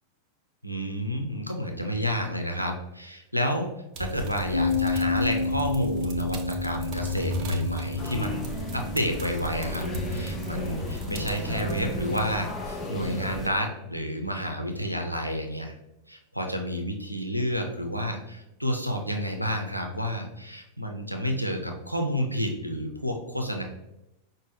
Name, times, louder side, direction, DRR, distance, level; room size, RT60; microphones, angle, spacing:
voice 1, 0.6-3.7 4.0-8.4 8.7-15.7 16.1-23.6, equal, 90° right, 3 dB, 0.5 m, -30 dB
sound 1, 4.0-12.2, left 1 dB, 40° right, 0.5 m, -34 dB
Bass guitar, 4.5-10.8, left 4 dB, 90° left, 0.5 m, -31 dB
sound 2, 8.0-13.5, left 1 dB, 20° left, 0.6 m, -35 dB
5.1 x 2.1 x 3.2 m, 0.89 s
figure-of-eight pair, 90°, 0 cm